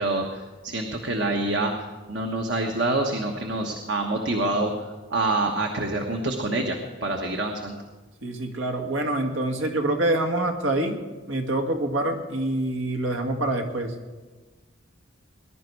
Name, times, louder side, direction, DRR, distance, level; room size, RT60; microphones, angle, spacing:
voice 1, 0.0-1.7 2.1-7.8, right 2 dB, 60° right, 3 dB, 1.2 m, -26 dB
voice 2, 8.2-11.0 11.3-13.9, right 1 dB, 80° right, 4 dB, 1.8 m, -26 dB
20.0 x 11.0 x 4.7 m, 1.3 s
head